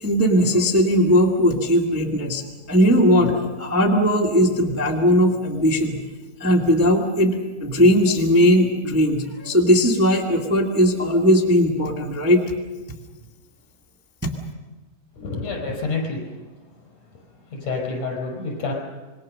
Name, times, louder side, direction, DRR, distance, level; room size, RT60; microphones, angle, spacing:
voice 1, 0.0-2.4 2.7-6.0 6.4-12.4 14.2-14.3, equal, 20° right, -1 dB, 0.4 m, -18 dB
voice 2, 15.2-16.2 17.5-18.7, left 3 dB, 45° left, 0 dB, 6.1 m, -28 dB
26.5 x 21.5 x 6.5 m, 1.3 s
omnidirectional pair, 4.4 m